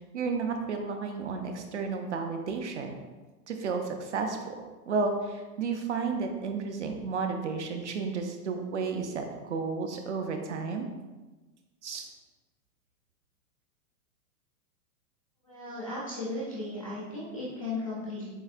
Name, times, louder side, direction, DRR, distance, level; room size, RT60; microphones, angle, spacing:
voice 1, 0.1-2.9 3.5-4.6 4.9-10.9 11.8-12.1, right 4 dB, 50° right, 5 dB, 0.5 m, -32 dB
voice 2, 15.4-18.3, left 2 dB, 25° left, -7 dB, 0.4 m, -36 dB
7.8 x 2.7 x 2.4 m, 1.2 s
supercardioid pair, 180°, 47 cm